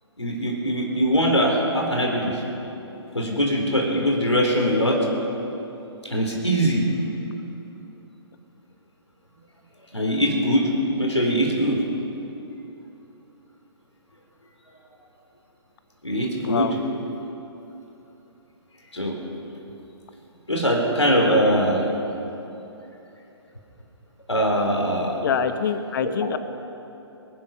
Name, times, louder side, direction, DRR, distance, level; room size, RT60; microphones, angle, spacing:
voice 1, 0.2-2.4 3.1-5.0 6.1-6.8 9.9-10.7 11.0-11.8 16.0-16.7 18.9-19.2 20.5-21.9 24.3-25.2 26.0-26.3, equal, 90° left, -1 dB, 3.7 m, -22 dB
voice 2, 16.4-16.8 25.2-26.4, left 7 dB, 50° left, 10 dB, 1.1 m, -25 dB
25.0 x 9.9 x 5.8 m, 3.0 s
figure-of-eight pair, 130°, 14 cm